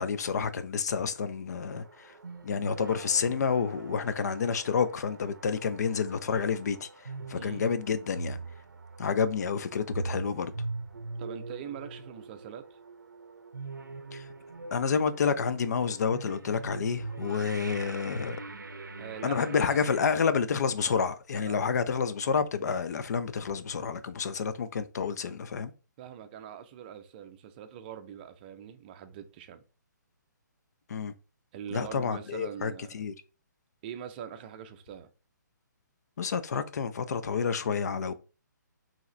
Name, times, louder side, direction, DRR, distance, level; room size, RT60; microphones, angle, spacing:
voice 1, 0.0-2.2 2.4-8.4 9.0-10.5 14.1-14.2 14.7-18.4 19.2-25.7 30.9-31.1 31.7-33.1 36.2-38.1, left 6 dB, 55° left, 0.5 m, -29 dB
sound 1, 1.7-20.1, right 3 dB, 90° right, 0.6 m, -42 dB
voice 2, 11.2-12.8 19.0-19.9 21.3-21.6 26.0-29.6 31.5-33.0 33.8-35.1, right 9 dB, 30° right, 0.5 m, -43 dB
4.6 x 2.9 x 3.1 m
figure-of-eight pair, 140°, 10 cm